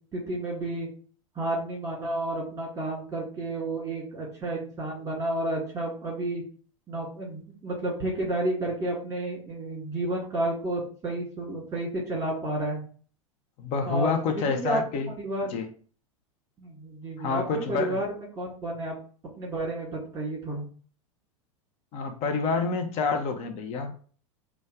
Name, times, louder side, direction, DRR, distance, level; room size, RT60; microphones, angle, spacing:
voice 1, 0.1-0.9 1.4-6.4 6.9-12.8 13.8-14.8 15.2-15.5 16.6-17.4 17.7-19.0 19.4-20.6, right 1 dB, 15° right, -2 dB, 2.2 m, -31 dB
voice 2, 13.6-15.1 15.5-15.7 17.2-18.0 21.9-23.9, left 4 dB, 35° left, 5 dB, 0.8 m, -28 dB
4.2 x 2.4 x 4.7 m, 0.43 s
figure-of-eight pair, 90°, 17 cm